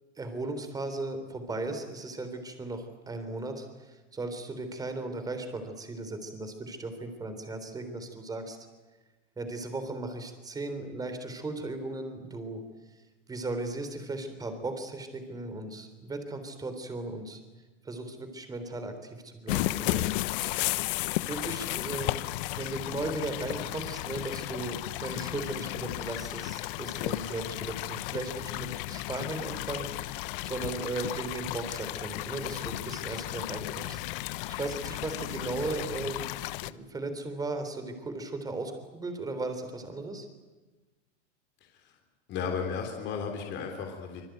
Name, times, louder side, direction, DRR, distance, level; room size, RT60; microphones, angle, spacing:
voice 1, 0.2-8.6 9.4-12.6 12.9-17.4 17.8-20.1 21.3-22.1 22.5-40.3, right 2 dB, 10° right, 8 dB, 3.6 m, -37 dB
sound 1, 19.5-36.7, left 18 dB, 50° left, 1.0 m, -34 dB
voice 2, 41.6-42.0 42.3-44.2, left 6 dB, 30° left, 3 dB, 3.5 m, -34 dB
25.5 x 23.0 x 9.2 m, 1.2 s
supercardioid pair, 155°, 35 cm